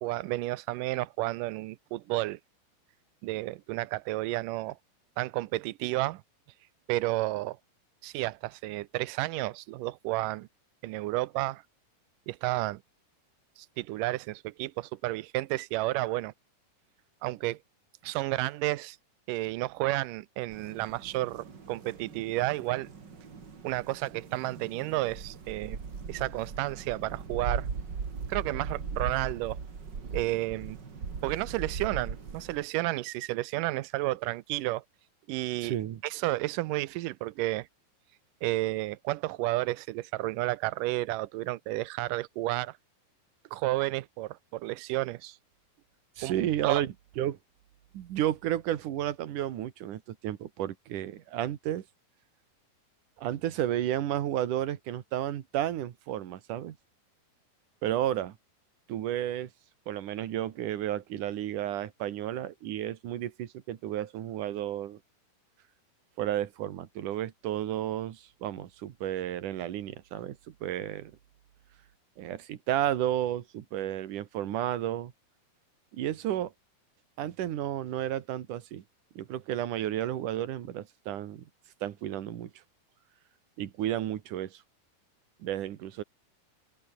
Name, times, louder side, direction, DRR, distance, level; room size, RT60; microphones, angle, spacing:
voice 1, 0.0-2.4 3.2-4.8 5.2-6.2 6.9-7.6 8.0-10.5 10.8-11.6 12.3-12.8 13.6-16.3 17.2-17.6 18.0-19.0 19.3-22.9 23.6-25.8 26.1-27.7 28.3-29.6 30.1-30.8 31.2-34.8 35.3-35.8 36.0-37.7 38.4-42.8 43.5-45.4 46.2-46.3 46.6-46.8, right 18 dB, 80° right, 2.0 m, -31 dB
sound 1, 20.5-32.6, right 5 dB, 30° right, 2.5 m, -39 dB
voice 2, 35.6-36.0 46.2-47.4 47.9-51.8 53.2-56.8 57.8-58.4 58.9-59.5 59.9-65.0 66.2-71.1 72.2-75.1 75.9-76.5 77.2-78.8 79.2-81.4 81.8-82.5 83.6-84.6 85.4-86.0, right 12 dB, 60° right, 2.7 m, -32 dB
open air
omnidirectional pair, 4.5 m